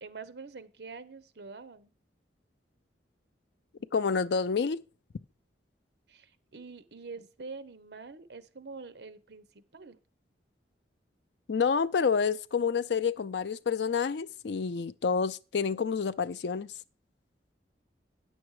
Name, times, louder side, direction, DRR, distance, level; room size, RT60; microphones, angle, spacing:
voice 1, 0.0-1.9 6.1-9.5 9.7-10.0, right 4 dB, 65° right, 0.8 m, -45 dB
voice 2, 3.9-4.8 11.5-16.7, left 5 dB, 70° left, 0.4 m, -28 dB
9.4 x 7.1 x 4.8 m
head